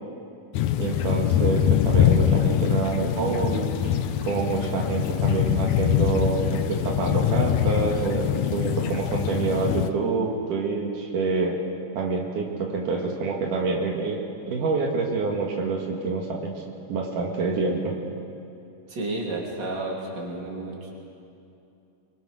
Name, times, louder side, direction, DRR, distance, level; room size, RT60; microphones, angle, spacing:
sound 1, 0.5-9.9, left 10 dB, 75° left, 2.1 m, -23 dB
voice 1, 0.8-3.7 4.3-11.6 12.0-14.2 14.5-16.5 16.9-17.9, right 4 dB, 80° right, 0 dB, 3.4 m, -27 dB
voice 2, 18.9-20.9, right 2 dB, 35° right, -2 dB, 3.9 m, -31 dB
24.0 x 24.0 x 6.4 m, 2.6 s
omnidirectional pair, 3.6 m